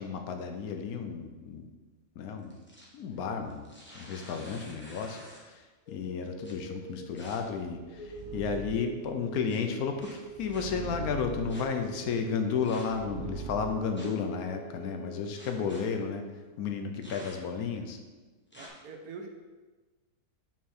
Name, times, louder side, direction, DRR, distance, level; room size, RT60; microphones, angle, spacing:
voice 1, 0.0-1.6 2.2-2.6 2.9-3.7 3.9-5.6 5.9-16.2 16.6-18.0, left 6 dB, 80° left, 5 dB, 1.1 m, -33 dB
sound 1, 2.4-3.0 3.5-5.6 6.4-6.5 7.2-7.4 8.0-8.4 9.5-9.6 10.0-10.7 11.5-11.6 12.6-13.0 14.0-14.3 15.4-15.8 17.0-17.6 18.5-18.7, left 1 dB, 10° left, 1.0 m, -50 dB
voice 2, 3.0-3.5 15.5-15.8 18.5-19.3, right 4 dB, 80° right, 3 dB, 1.3 m, -47 dB
sound 2, 5.9-16.4, right 6 dB, 45° left, 0.5 m, -46 dB
sound 3, 7.5-13.8, right 4 dB, 60° right, 0.5 m, -44 dB
5.8 x 4.7 x 4.3 m, 1.3 s
omnidirectional pair, 1.6 m